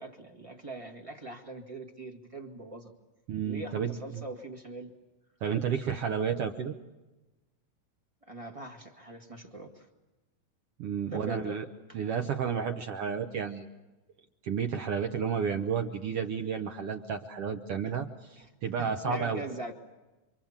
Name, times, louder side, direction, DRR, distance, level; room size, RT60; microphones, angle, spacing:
voice 1, 0.0-2.9 3.4-4.9 8.3-9.9 11.1-11.6 18.4-18.5 18.8-19.7, right 2 dB, 20° right, 2 dB, 0.8 m, -42 dB
voice 2, 3.3-4.2 5.4-6.7 10.8-11.7 11.9-13.7 14.4-19.4, right 7 dB, 70° right, 5 dB, 1.4 m, -31 dB
28.5 x 25.0 x 7.3 m, 1.1 s
omnidirectional pair, 3.8 m